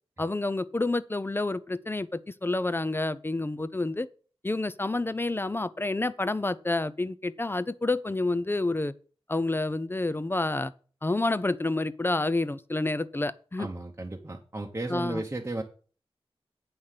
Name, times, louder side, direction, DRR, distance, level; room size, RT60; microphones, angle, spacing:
voice 1, 0.2-4.1 4.4-8.9 9.3-10.7 11.0-13.7 14.9-15.2, left 2 dB, 20° left, 0.5 m, -29 dB
voice 2, 13.6-15.6, right 2 dB, 25° right, 0.9 m, -34 dB
8.6 x 5.7 x 6.6 m
wide cardioid pair, 100°, 10 cm